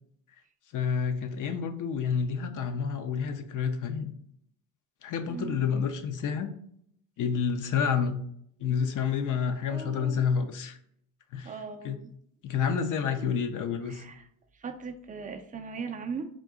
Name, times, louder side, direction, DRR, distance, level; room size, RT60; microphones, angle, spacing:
voice 1, 0.7-4.1 5.0-6.5 7.2-8.2 8.6-10.8 11.3-11.5 11.8-12.0 12.4-14.0, left 6 dB, 40° left, 8 dB, 0.6 m, -29 dB
voice 2, 5.3-5.6 9.7-10.3 11.4-12.1 13.1-13.3 13.9-14.3 14.5-16.3, right 5 dB, 20° right, 5 dB, 0.4 m, -39 dB
3.7 x 2.6 x 3.8 m, 0.68 s
supercardioid pair, 90°, 47 cm